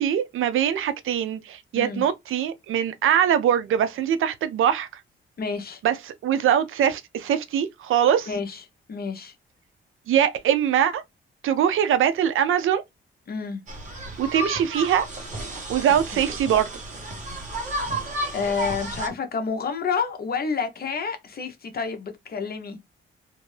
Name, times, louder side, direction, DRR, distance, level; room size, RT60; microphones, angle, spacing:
voice 1, 0.0-4.9 5.8-6.0 6.2-8.3 10.1-11.0 11.4-12.8 14.2-15.1 15.7-16.7, right 9 dB, 75° right, 0.5 m, -22 dB
voice 2, 1.8-2.1 5.4-5.8 8.2-8.6 8.9-9.3 13.3-13.6 16.1-16.2 18.3-22.8, left 5 dB, 45° left, 0.8 m, -29 dB
sound 1, 13.7-19.1, right 1 dB, 35° right, 1.2 m, -32 dB
2.6 x 2.5 x 3.1 m
cardioid pair, 95°, 21 cm